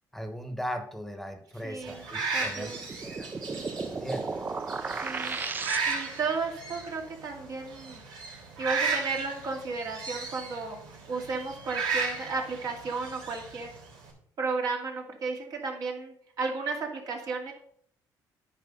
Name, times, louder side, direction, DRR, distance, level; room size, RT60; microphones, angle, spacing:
voice 1, 0.1-3.3 3.9-4.3, equal, 5° left, 7 dB, 1.2 m, -38 dB
voice 2, 1.6-2.1 2.3-2.9 4.9-5.4 5.9-8.0 8.6-10.8 11.1-13.7 14.4-17.5, right 4 dB, 55° right, 1 dB, 2.4 m, -33 dB
sound 1, 1.8-14.1, right 4 dB, 90° right, 4.3 m, -35 dB
sound 2, 2.7-6.3, right 4 dB, 25° right, 0.6 m, -35 dB
9.4 x 5.0 x 5.4 m, 0.64 s
cardioid pair, 110°, 7 cm